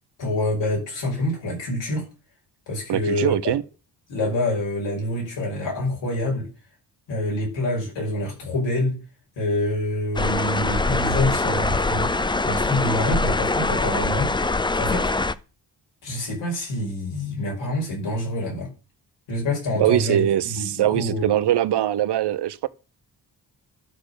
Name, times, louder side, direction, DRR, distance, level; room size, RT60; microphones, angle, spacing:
voice 1, 0.2-2.1 2.7-3.5 4.1-6.5 7.1-9.0 9.4-12.1 12.4-14.3 14.7-15.1 16.0-18.7 19.3-21.3, left 1 dB, 85° left, 5.5 m, -26 dB
voice 2, 2.9-3.6 19.8-22.7, right 12 dB, 70° right, 0.8 m, -22 dB
sound 1, 10.2-15.3, left 3 dB, 10° left, 0.5 m, -23 dB
12.0 x 4.2 x 6.7 m
cardioid pair, 65°, 43 cm